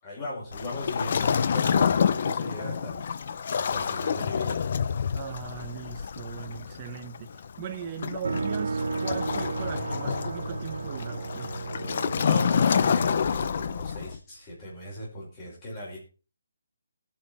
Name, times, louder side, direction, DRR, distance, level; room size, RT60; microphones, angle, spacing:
voice 1, 0.0-3.0 3.5-4.6 12.2-16.0, left 1 dB, 15° left, 5.1 m, -38 dB
Waves surf, 0.5-14.2, left 7 dB, 30° left, 0.6 m, -28 dB
voice 2, 5.1-11.6, right 8 dB, 15° right, 1.1 m, -39 dB
sound 1, 8.2-14.1, right 4 dB, 70° right, 1.2 m, -33 dB
19.0 x 7.8 x 4.3 m
hypercardioid pair, 180°, 0 cm